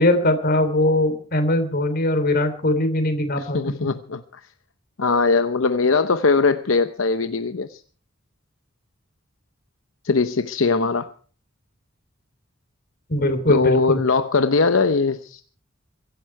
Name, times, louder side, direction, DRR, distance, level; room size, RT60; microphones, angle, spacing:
voice 1, 0.0-3.7 13.1-14.0, left 1 dB, 50° left, 9 dB, 3.2 m, -21 dB
voice 2, 3.4-4.4 5.0-7.8 10.0-11.1 13.5-15.4, left 4 dB, 75° left, 9 dB, 0.8 m, -20 dB
23.5 x 11.5 x 4.6 m, 0.44 s
head